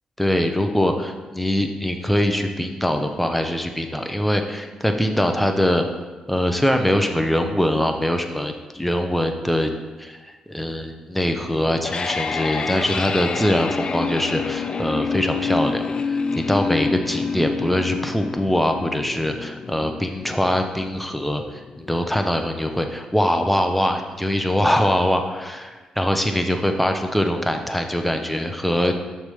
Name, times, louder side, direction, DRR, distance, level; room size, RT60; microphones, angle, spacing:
voice 1, 0.2-6.0 6.3-9.7 10.0-28.9, equal, 5° left, 5 dB, 0.7 m, -23 dB
sound 1, 11.6-22.6, left 4 dB, 45° left, 0.3 m, -28 dB
6.2 x 3.3 x 5.4 m, 1.3 s
cardioid pair, 70°, 2 cm